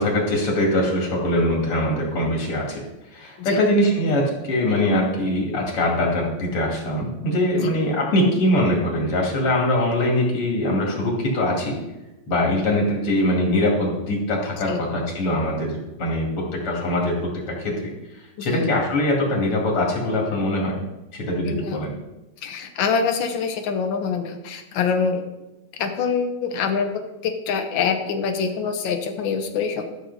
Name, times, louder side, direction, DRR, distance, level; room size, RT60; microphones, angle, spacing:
voice 1, 0.0-2.8 3.1-11.8 12.3-16.3 16.6-17.2 17.5-17.9 18.4-20.8 21.1-21.9, left 1 dB, 85° left, -1 dB, 3.3 m, -22 dB
voice 2, 21.4-21.8 22.4-25.3 25.8-26.9 27.2-29.9, left 5 dB, 65° left, 5 dB, 1.6 m, -25 dB
13.0 x 6.7 x 4.1 m, 1.0 s
omnidirectional pair, 2.4 m